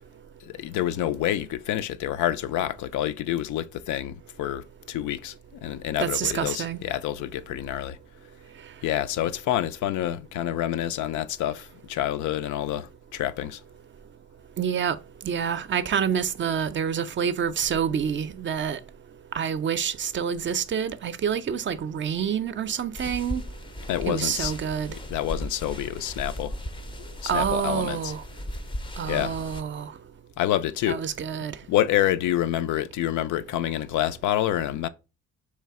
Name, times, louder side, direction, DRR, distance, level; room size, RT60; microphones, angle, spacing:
voice 1, 0.4-5.3 5.6-8.0 8.8-13.6 23.9-24.5 24.9-26.6 27.0-28.1 29.1-29.5 30.4-31.0 31.7-34.9, left 12 dB, 80° left, 0.4 m, -28 dB
voice 2, 6.0-6.8 14.6-15.0 15.2-18.8 19.3-23.4 24.1-24.9 27.3-28.2 29.0-29.9 30.9-31.6, right 7 dB, 40° right, 0.5 m, -27 dB
sound 1, 22.9-29.6, left 1 dB, 15° left, 0.4 m, -37 dB
3.3 x 3.2 x 4.7 m
cardioid pair, 90°, 30 cm